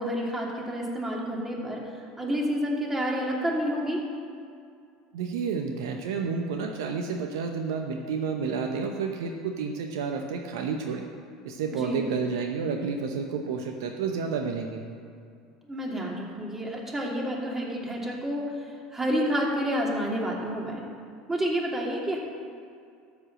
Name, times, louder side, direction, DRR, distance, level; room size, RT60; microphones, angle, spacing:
voice 1, 0.0-4.0 11.7-12.0 15.6-20.8 21.3-22.2, equal, 15° right, -2 dB, 2.7 m, -29 dB
voice 2, 5.1-11.1 11.4-14.8, right 5 dB, 75° right, 3 dB, 0.8 m, -30 dB
13.0 x 5.2 x 7.4 m, 2.4 s
hypercardioid pair, 80°, 2 cm